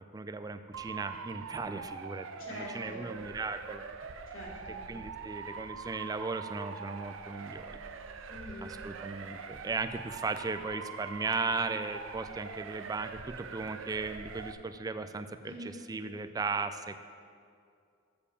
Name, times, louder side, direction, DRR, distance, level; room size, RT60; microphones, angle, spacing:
voice 1, 0.0-3.8 4.9-7.8 8.6-17.0, right 4 dB, 20° right, 10 dB, 0.3 m, -37 dB
Motor vehicle (road) / Siren, 0.7-14.5, right 5 dB, 75° right, 0.5 m, -43 dB
voice 2, 2.4-3.0 4.3-4.8 8.3-8.7 15.4-15.8, left 1 dB, 80° left, -5 dB, 2.7 m, -44 dB
7.0 x 6.9 x 7.1 m, 2.3 s
head